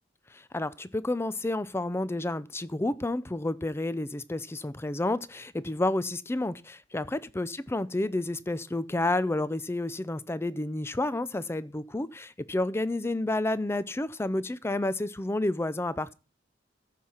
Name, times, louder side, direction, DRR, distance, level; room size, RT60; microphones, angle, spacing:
voice 1, 0.5-16.1, left 2 dB, 15° left, 0.4 m, -30 dB
14.5 x 5.6 x 4.4 m
head